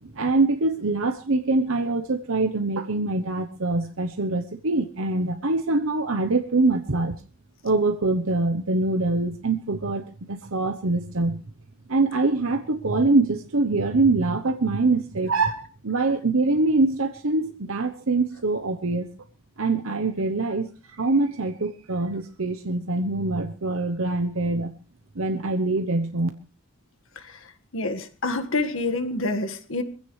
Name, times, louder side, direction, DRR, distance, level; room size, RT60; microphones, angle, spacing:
voice 1, 0.0-7.2 7.6-11.4 11.9-19.1 19.6-24.7 25.1-26.3, right 3 dB, 70° right, 7 dB, 1.0 m, -24 dB
voice 2, 27.7-29.8, left 2 dB, 65° left, 7 dB, 1.7 m, -27 dB
22.0 x 15.5 x 3.3 m, 0.38 s
head